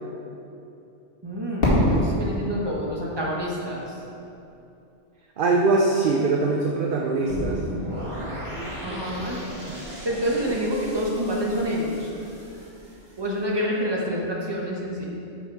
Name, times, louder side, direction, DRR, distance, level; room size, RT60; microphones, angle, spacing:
voice 1, 1.2-4.0 8.8-9.4 10.0-12.1 13.2-15.1, equal, 20° right, -3 dB, 1.1 m, -27 dB
Fireworks, 1.6-4.5, left 1 dB, 50° left, 2.2 m, -25 dB
voice 2, 5.4-7.6 9.7-9.8 10.5-10.6, right 3 dB, 55° right, 1 dB, 0.7 m, -22 dB
sound 1, 7.3-13.3, equal, 40° right, 1.9 m, -36 dB
7.9 x 5.9 x 4.7 m, 2.7 s
omnidirectional pair, 1.2 m